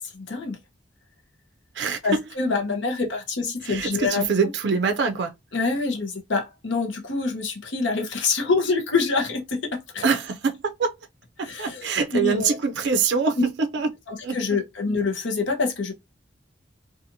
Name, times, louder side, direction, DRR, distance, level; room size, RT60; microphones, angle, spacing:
voice 1, 0.1-0.6 2.0-4.3 5.5-10.1 11.4-12.5 14.1-15.9, left 4 dB, 80° left, 0.8 m, -26 dB
voice 2, 3.6-5.3 10.0-11.0 11.4-13.9 14.2-14.6, right 5 dB, 65° right, 0.4 m, -24 dB
2.8 x 2.4 x 2.6 m
head